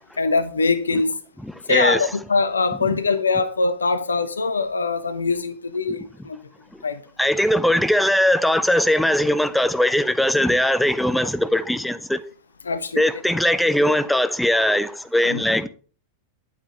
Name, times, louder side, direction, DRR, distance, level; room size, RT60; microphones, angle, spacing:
voice 1, 0.2-1.2 1.7-6.5 6.8-7.0 12.6-13.0 15.3-15.4, left 3 dB, 75° left, 0.9 m, -22 dB
voice 2, 1.7-2.0 7.2-12.2 13.0-15.7, left 1 dB, ahead, 0.7 m, -20 dB
9.8 x 8.5 x 4.3 m
figure-of-eight pair, 90°, 0 cm